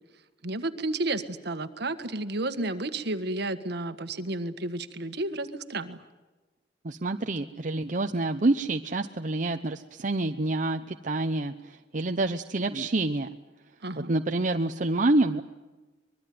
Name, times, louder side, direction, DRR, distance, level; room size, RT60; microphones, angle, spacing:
voice 1, 0.4-6.0 13.8-14.1, right 2 dB, 65° right, 10 dB, 1.6 m, -32 dB
voice 2, 6.8-13.3 14.0-15.4, right 2 dB, 45° right, 6 dB, 0.8 m, -27 dB
24.5 x 22.0 x 9.5 m, 1.2 s
head